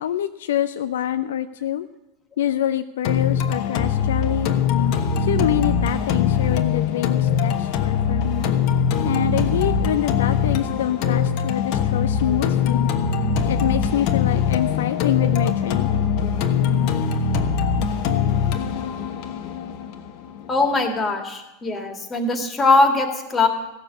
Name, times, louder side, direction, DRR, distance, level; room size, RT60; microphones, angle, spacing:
voice 1, 0.0-1.9 2.4-4.5 5.2-8.5 9.0-12.9 13.5-15.9, left 11 dB, 70° left, 10 dB, 0.4 m, -26 dB
sound 1, 3.0-21.0, left 7 dB, 50° left, 1.2 m, -22 dB
voice 2, 20.5-23.5, left 3 dB, 25° left, 5 dB, 2.2 m, -20 dB
15.5 x 7.2 x 8.2 m, 0.97 s
hypercardioid pair, 90°, 0 cm